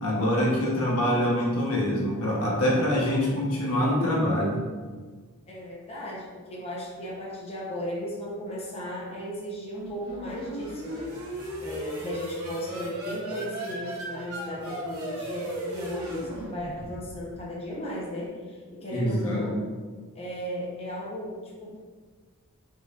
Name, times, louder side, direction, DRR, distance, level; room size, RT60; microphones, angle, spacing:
voice 1, 0.0-4.6 18.9-19.4, equal, 85° left, -4 dB, 1.2 m, -25 dB
voice 2, 5.5-11.1 11.6-19.6 20.1-21.8, equal, 30° left, -5 dB, 1.0 m, -35 dB
sound 1, 9.7-17.4, right 1 dB, 80° right, 1.0 m, -36 dB
5.2 x 3.9 x 2.5 m, 1.5 s
head